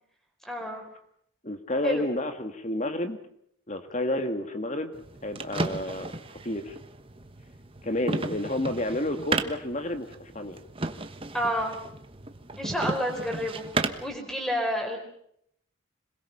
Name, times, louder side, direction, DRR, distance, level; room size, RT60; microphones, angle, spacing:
voice 1, 0.4-0.8 1.8-2.0 11.3-11.8 12.6-13.6 14.0-15.0, equal, ahead, 3 dB, 4.6 m, -29 dB
voice 2, 1.4-3.2 3.7-4.9 5.2-6.1 6.4-6.8 7.8-10.6, left 1 dB, 35° left, 8 dB, 1.8 m, -30 dB
sound 1, 4.9-14.2, right 3 dB, 25° right, 1.2 m, -34 dB
26.5 x 22.0 x 5.6 m, 0.69 s
head